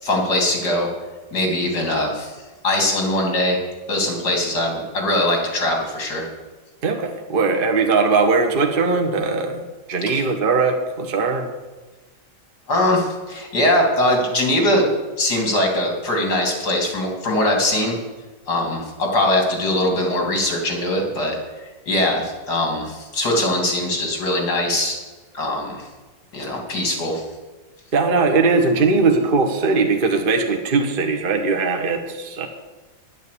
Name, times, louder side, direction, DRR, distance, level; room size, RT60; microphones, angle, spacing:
voice 1, 0.0-0.9 1.3-2.3 2.6-3.6 3.9-6.3 10.1-10.2 12.7-14.8 15.2-18.0 18.5-21.4 21.9-25.0 25.3-25.9 26.3-27.2, left 1 dB, 65° left, 1 dB, 3.5 m, -21 dB
voice 2, 6.8-9.6 9.9-11.5 27.9-32.5, right 4 dB, 35° right, 3 dB, 1.2 m, -19 dB
10.5 x 9.2 x 8.4 m, 1.3 s
omnidirectional pair, 1.9 m